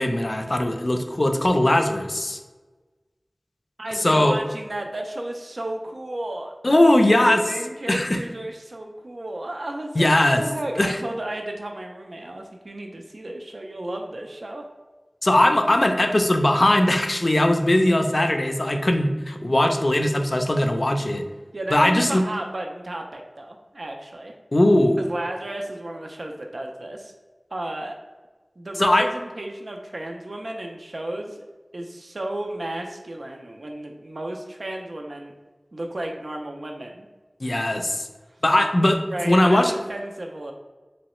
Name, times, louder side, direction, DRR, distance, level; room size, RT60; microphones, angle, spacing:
voice 1, 0.0-2.4 4.0-4.4 6.6-7.4 7.9-8.2 10.0-10.4 10.8-11.0 15.2-21.2 21.7-22.2 24.5-25.0 28.8-29.1 37.4-38.1 38.4-39.7, left 1 dB, 50° left, 5 dB, 0.4 m, -19 dB
voice 2, 3.8-6.8 7.2-14.7 18.7-18.8 21.5-24.3 25.0-27.1 27.5-28.0 28.6-31.4 31.7-35.3 35.7-37.1 39.1-40.5, right 1 dB, 70° right, 2 dB, 0.3 m, -33 dB
3.1 x 3.0 x 2.9 m, 1.3 s
wide cardioid pair, 50°, 0 cm